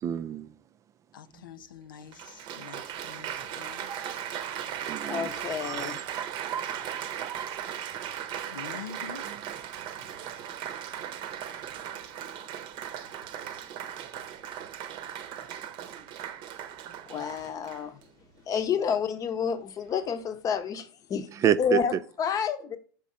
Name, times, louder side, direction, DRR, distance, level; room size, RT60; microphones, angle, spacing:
voice 1, 0.0-0.5 4.3-5.3 5.6-7.7 9.3-9.4 21.3-22.0, right 9 dB, 30° right, 0.3 m, -31 dB
voice 2, 1.1-3.9 8.5-9.2, left 8 dB, 85° left, 0.5 m, -45 dB
Applause, 1.4-1.5 2.1-18.0 18.8-19.1, right 10 dB, 45° right, 0.8 m, -37 dB
voice 3, 5.0-6.0 17.1-18.0 18.5-21.3 21.6-22.8, left 7 dB, 35° left, 0.8 m, -29 dB
5.0 x 3.7 x 5.5 m
hypercardioid pair, 100°, 11 cm